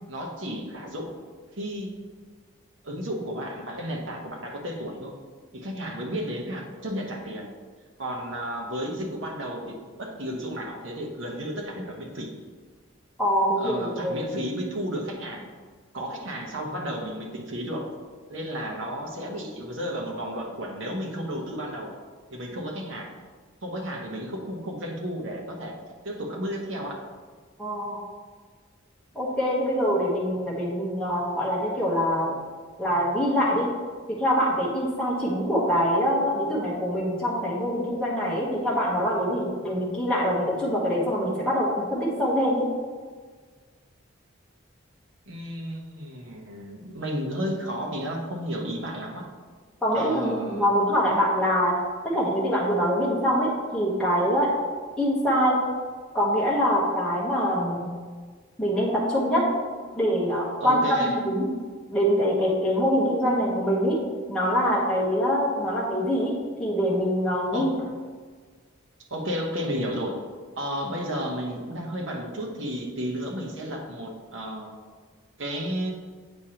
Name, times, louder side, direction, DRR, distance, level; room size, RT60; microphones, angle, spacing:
voice 1, 0.1-1.2 1.6-2.0 2.8-5.1 5.5-7.5 8.0-12.3 13.6-15.5 15.9-17.9 18.3-21.9 22.3-23.1 23.6-25.8 26.0-27.0 45.3-49.3 49.9-50.7 60.6-61.2 67.5-67.9 69.1-70.2 70.6-74.7 75.4-75.9, equal, 65° right, 0 dB, 1.0 m, -33 dB
voice 2, 13.2-14.2 27.6-28.0 29.1-32.4 32.8-33.7 34.2-42.6 49.8-51.8 52.1-54.5 55.0-55.6 56.1-57.9 58.6-59.5 60.0-61.0 61.2-61.5 61.9-64.0 64.3-66.3 66.6-67.7, equal, 5° left, -7 dB, 1.0 m, -24 dB
8.1 x 4.9 x 2.9 m, 1.5 s
head